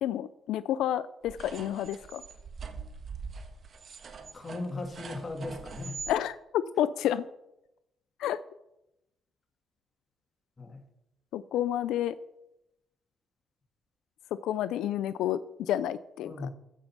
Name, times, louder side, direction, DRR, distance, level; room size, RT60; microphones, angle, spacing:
voice 1, 0.0-2.2 6.1-7.3 8.2-8.4 11.3-12.2 14.3-16.5, left 11 dB, 85° left, 15 dB, 0.4 m, -30 dB
sound 1, 1.2-6.1, right 5 dB, 50° right, 1.5 m, -43 dB
voice 2, 4.3-6.0 10.6-10.8 16.2-16.5, left 2 dB, 25° left, 4 dB, 2.3 m, -37 dB
15.0 x 5.3 x 5.9 m, 0.88 s
cardioid pair, 90°, 0 cm